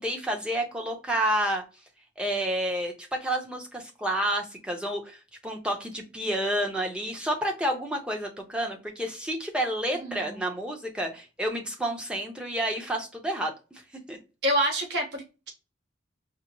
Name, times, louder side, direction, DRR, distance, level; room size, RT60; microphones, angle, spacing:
voice 1, 0.0-1.6 2.2-13.8 14.1-14.2, right 1 dB, 5° right, 1 dB, 0.7 m, -30 dB
voice 2, 10.0-10.4 14.4-15.5, right 1 dB, 60° right, 0 dB, 1.1 m, -27 dB
5.0 x 2.0 x 2.9 m, 0.29 s
head